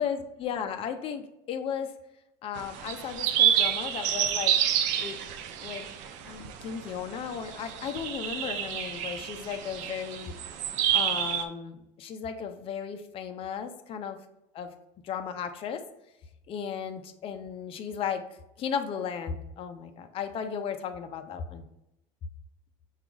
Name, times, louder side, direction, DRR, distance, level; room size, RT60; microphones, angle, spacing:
voice 1, 0.0-1.9 2.4-4.5 5.0-5.2 5.6-5.9 6.2-10.3 10.9-14.2 14.5-14.7 15.0-15.8 16.5-18.2 18.6-21.7, left 7 dB, 45° left, 8 dB, 0.5 m, -35 dB
sound 1, 2.6-11.4, right 10 dB, 75° right, 0.5 m, -29 dB
5.7 x 2.4 x 3.8 m, 0.86 s
supercardioid pair, 110°, 13 cm